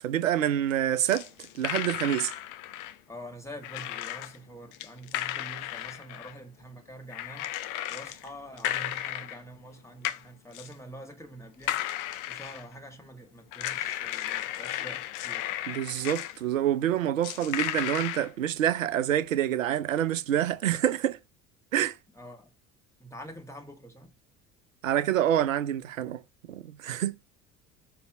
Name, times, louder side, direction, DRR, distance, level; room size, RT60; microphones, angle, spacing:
voice 1, 0.0-1.3 1.5-2.3 15.7-21.2 21.7-22.0 24.8-26.2 26.5-27.1, right 11 dB, 75° right, 0.6 m, -27 dB
sound 1, 1.1-2.9 3.6-4.4 4.7-6.4 7.1-8.3 8.6-9.4 10.0-10.2 10.5-10.7 11.6-12.7 13.5-16.4 17.2-18.3, left 14 dB, 50° left, 0.7 m, -34 dB
voice 2, 3.1-15.9 22.1-22.5 23.0-24.2, right 1 dB, 5° left, 2.0 m, -46 dB
7.0 x 3.4 x 5.8 m
figure-of-eight pair, 60°, 39 cm